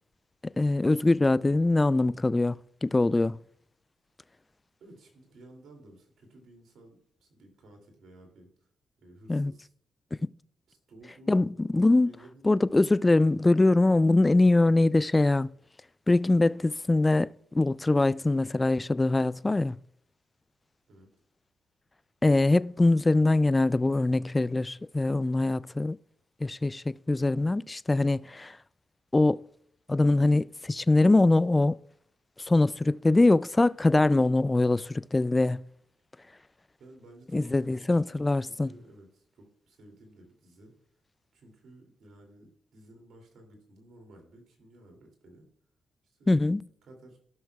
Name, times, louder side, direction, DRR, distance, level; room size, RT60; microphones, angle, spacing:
voice 1, 0.6-2.6 2.8-3.4 9.3-9.5 10.2-10.3 11.3-12.1 12.4-15.5 16.1-19.8 22.2-26.0 26.4-28.6 29.1-29.4 29.9-31.8 32.5-35.6 37.3-38.7 46.3-46.6, left 2 dB, 20° left, 0.3 m, -23 dB
voice 2, 4.8-8.7 9.0-9.7 10.7-11.4 11.9-12.6 20.9-21.1 36.8-40.7 41.3-45.5 46.0-46.3 46.8-47.2, right 1 dB, 70° right, 2.6 m, -54 dB
15.0 x 6.3 x 2.3 m
supercardioid pair, 55°, 0 cm